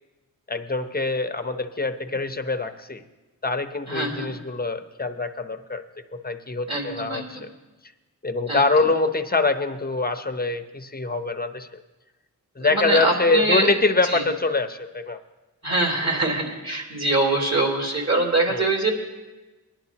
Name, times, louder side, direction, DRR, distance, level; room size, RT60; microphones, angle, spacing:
voice 1, 0.5-3.0 3.4-5.8 6.2-7.5 8.2-11.7 12.6-15.2 18.5-18.7, left 3 dB, 25° left, 7 dB, 0.8 m, -24 dB
voice 2, 3.9-4.3 6.7-7.4 8.5-8.7 12.6-13.7 14.0-14.2 15.6-18.9, right 2 dB, 45° right, -2 dB, 3.1 m, -24 dB
20.5 x 11.0 x 2.9 m, 1.1 s
wide cardioid pair, 65°, 36 cm